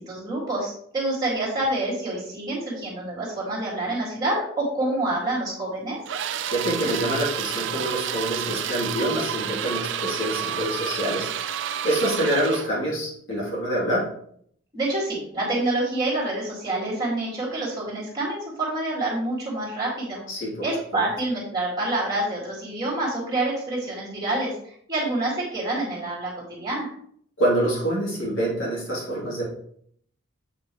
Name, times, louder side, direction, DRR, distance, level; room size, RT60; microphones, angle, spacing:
voice 1, 0.0-6.0 14.7-20.2 20.6-24.5 24.9-26.9, right 2 dB, 20° right, -5 dB, 2.5 m, -27 dB
sound 1, 6.1-12.7, right 9 dB, 60° right, 0.4 m, -30 dB
voice 2, 6.5-11.3 11.8-14.0 20.3-20.5 20.9-21.0 27.4-29.4, right 1 dB, 60° left, -7 dB, 3.2 m, -26 dB
7.4 x 5.8 x 3.2 m, 0.65 s
head